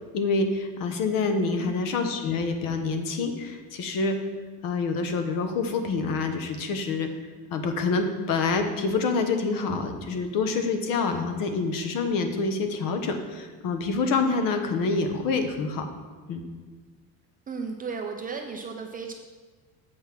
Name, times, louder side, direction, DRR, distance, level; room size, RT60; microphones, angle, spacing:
voice 1, 0.1-4.2 4.6-7.1 7.5-15.9 16.3-16.4, left 4 dB, 55° left, 6 dB, 1.1 m, -27 dB
voice 2, 1.6-1.9 17.5-19.1, right 5 dB, 25° right, 3 dB, 0.4 m, -35 dB
7.7 x 5.5 x 6.0 m, 1.4 s
cardioid pair, 155°, 40 cm